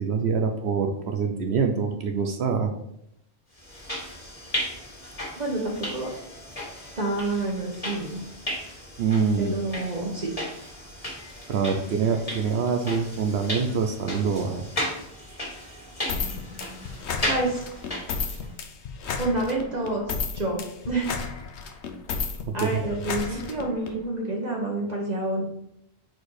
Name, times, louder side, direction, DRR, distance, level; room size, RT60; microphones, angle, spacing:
voice 1, 0.0-2.7 9.0-9.6 11.5-14.6 22.6-22.8 23.3-23.4, right 5 dB, 75° right, 4 dB, 0.9 m, -25 dB
sound 1, 3.6-18.5, equal, 30° left, 1.9 m, -35 dB
voice 2, 5.4-6.1 7.0-8.2 9.4-10.3 17.3-17.7 19.1-21.1 21.7-21.8 22.5-25.4, right 2 dB, 40° right, -2 dB, 1.1 m, -28 dB
sound 2, 16.1-23.9, left 5 dB, 75° left, 1.0 m, -33 dB
4.6 x 4.4 x 4.7 m, 0.79 s
omnidirectional pair, 1.2 m